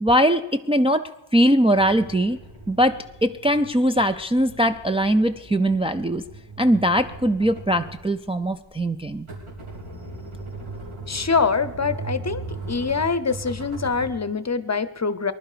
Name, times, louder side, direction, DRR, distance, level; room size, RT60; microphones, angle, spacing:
voice 1, 0.0-2.4 2.7-6.2 6.6-9.3, equal, 10° right, 6 dB, 0.4 m, -21 dB
sound 1, 1.8-14.1, right 3 dB, 85° right, 4.0 m, -38 dB
voice 2, 11.1-12.4 12.7-15.3, left 5 dB, 35° left, 14 dB, 0.7 m, -24 dB
20.0 x 11.5 x 5.0 m, 1.0 s
wide cardioid pair, 70°, 49 cm